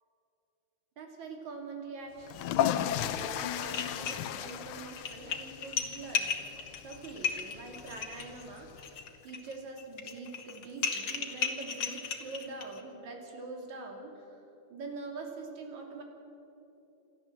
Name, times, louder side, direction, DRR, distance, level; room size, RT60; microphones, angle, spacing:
voice 1, 1.0-14.4 14.7-16.0, right 3 dB, 65° right, 2 dB, 3.9 m, -44 dB
sound 1, 2.2-9.0, left 10 dB, 85° left, 2.3 m, -35 dB
sound 2, 3.2-3.3 3.6-4.5 4.9-12.8, left 6 dB, 45° left, 1.7 m, -35 dB
27.5 x 12.5 x 7.7 m, 3.0 s
omnidirectional pair, 3.6 m